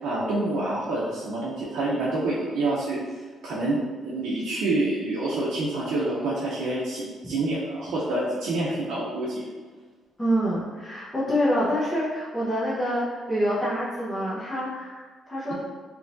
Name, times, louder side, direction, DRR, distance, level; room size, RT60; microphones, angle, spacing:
voice 1, 0.0-3.0 3.4-9.4, right 2 dB, 85° right, -8 dB, 0.7 m, -27 dB
voice 2, 10.2-15.5, equal, 15° left, -9 dB, 0.9 m, -26 dB
3.6 x 3.0 x 2.6 m, 1.4 s
cardioid pair, 90°, 0 cm